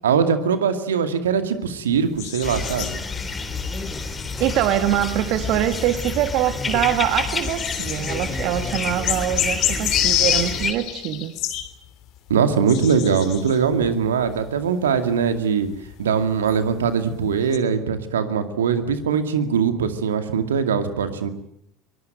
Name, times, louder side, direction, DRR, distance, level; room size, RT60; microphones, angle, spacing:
voice 1, 0.0-3.0 12.3-15.7 16.0-21.3, right 6 dB, 75° right, 9 dB, 2.3 m, -21 dB
sound 1, 1.9-5.0 5.3-17.6, left 12 dB, 55° left, 3.2 m, -28 dB
sound 2, 2.4-10.7, left 4 dB, 20° left, 3.7 m, -28 dB
voice 2, 4.4-11.3, right 11 dB, 55° right, 9 dB, 1.6 m, -23 dB
23.5 x 21.0 x 9.2 m, 0.73 s
figure-of-eight pair, 70°, 0 cm